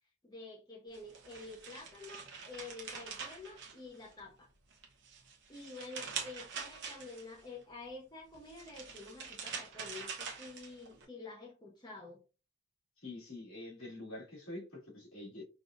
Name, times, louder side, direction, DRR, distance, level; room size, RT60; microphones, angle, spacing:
voice 1, 0.2-4.5 5.5-12.2, left 3 dB, 20° left, 0.7 m, -49 dB
sound 1, 0.9-4.3 4.7-7.4 8.3-11.0, right 6 dB, 55° right, 0.7 m, -45 dB
voice 2, 13.0-15.4, left 2 dB, 65° left, 2.3 m, -46 dB
5.2 x 2.4 x 2.5 m
head